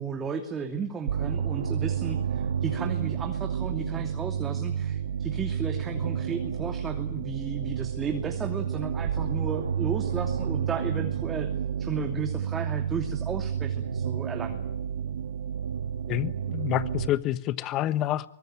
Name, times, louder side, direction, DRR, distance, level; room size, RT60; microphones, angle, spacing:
voice 1, 0.0-11.5 11.8-14.6, right 6 dB, 20° right, 2.8 m, -34 dB
sound 1, 1.1-17.1, right 8 dB, 80° right, 1.5 m, -30 dB
voice 2, 16.1-18.3, left 13 dB, 35° left, 1.2 m, -28 dB
24.0 x 19.5 x 9.2 m
hypercardioid pair, 130°, 0 cm